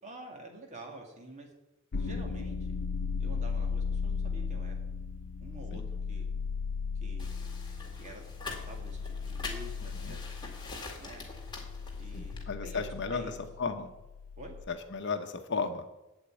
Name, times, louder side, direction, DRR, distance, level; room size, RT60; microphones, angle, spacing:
voice 1, 0.0-1.5 2.0-2.6 3.2-4.8 5.4-5.8 6.1-6.3 7.0-7.5 8.0-10.2 11.0-11.3 12.0-13.4 14.4-14.5, right 1 dB, 35° right, 1 dB, 2.2 m, -48 dB
sound 1, 1.9-14.7, left 5 dB, 85° left, 0.7 m, -36 dB
sound 2, 7.2-12.4, left 3 dB, 20° left, 1.9 m, -44 dB
voice 2, 12.1-13.9 14.7-15.8, left 4 dB, 55° left, 7 dB, 0.9 m, -35 dB
8.2 x 8.1 x 8.8 m, 1.0 s
head